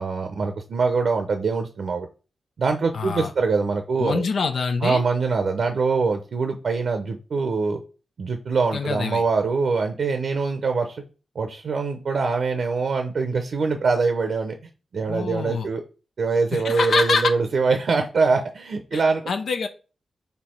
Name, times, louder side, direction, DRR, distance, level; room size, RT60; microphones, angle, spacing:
voice 1, 0.0-2.1 2.6-4.3 4.8-7.8 8.2-11.0 11.4-14.5 14.9-15.8 16.2-19.2, right 4 dB, 75° right, 6 dB, 0.6 m, -23 dB
voice 2, 2.9-3.3 4.0-5.0 8.7-9.2 15.1-15.7 16.5-17.3 18.9-19.0 19.3-19.7, left 5 dB, 80° left, 6 dB, 0.5 m, -25 dB
4.4 x 2.8 x 4.3 m, 0.34 s
cardioid pair, 50°, 0 cm